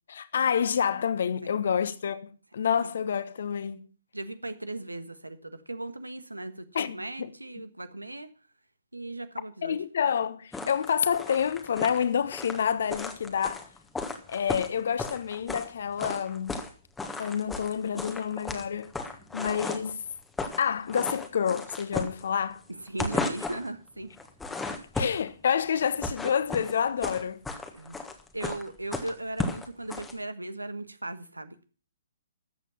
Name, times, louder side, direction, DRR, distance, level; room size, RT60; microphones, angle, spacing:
voice 1, 0.1-3.9 6.7-7.3 9.6-13.6 14.3-16.6 17.2-18.9 19.3-20.0 20.6-22.6 25.0-27.4, left 7 dB, 55° left, 1.2 m, -28 dB
voice 2, 1.4-1.7 2.8-2.9 4.1-8.3 8.9-9.8 22.7-24.1 27.7-28.0 28.3-31.7, right 2 dB, 80° right, 1.4 m, -38 dB
sound 1, 10.5-15.7 16.0-16.7 17.0-19.9 20.2-20.6 20.9-22.6 22.9-23.7 24.2-25.3 25.8-30.1, left 3 dB, 5° left, 1.4 m, -34 dB
13.5 x 8.1 x 5.6 m
figure-of-eight pair, 125°, 0 cm